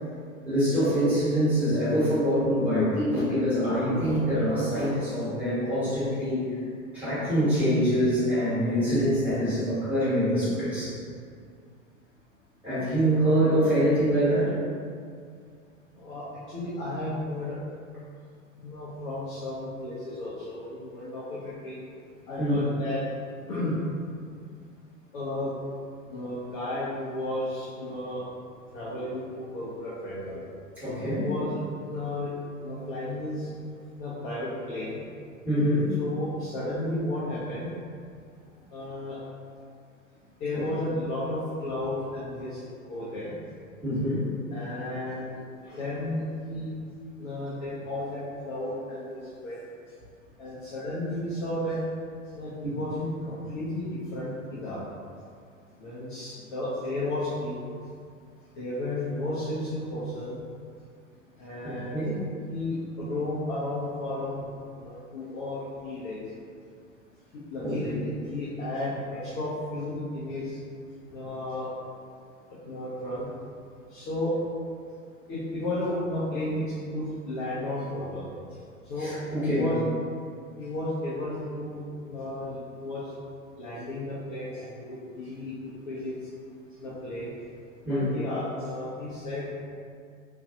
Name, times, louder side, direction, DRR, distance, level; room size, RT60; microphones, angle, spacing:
voice 1, 0.4-6.4 6.9-11.0 12.6-14.5 22.4-22.6 30.8-31.3 35.4-36.0 40.5-40.6 43.8-44.3 45.6-45.8 61.6-62.1 67.6-68.0 79.0-79.6 87.8-88.1, equal, 5° right, -13 dB, 1.3 m, -25 dB
voice 2, 16.0-17.6 18.6-21.8 22.3-23.0 23.5-23.8 25.1-25.5 26.1-28.2 28.7-30.4 31.1-32.3 32.6-33.5 34.0-35.0 36.0-37.7 38.7-39.2 40.4-42.6 42.9-43.3 44.5-45.4 45.8-46.2 46.5-46.7 47.2-49.6 50.4-51.8 52.3-54.8 55.8-57.7 58.6-60.4 61.4-62.0 62.5-64.5 64.8-66.3 67.3-70.6 71.1-71.7 72.6-73.3 73.9-74.3 75.3-76.6 76.9-78.3 78.8-79.1 79.4-79.8 80.6-83.1 83.6-85.5 85.9-86.1 86.8-87.3 87.9-89.6, left 1 dB, 40° left, -9 dB, 0.6 m, -33 dB
2.5 x 2.3 x 2.5 m, 2.2 s
figure-of-eight pair, 90°, 41 cm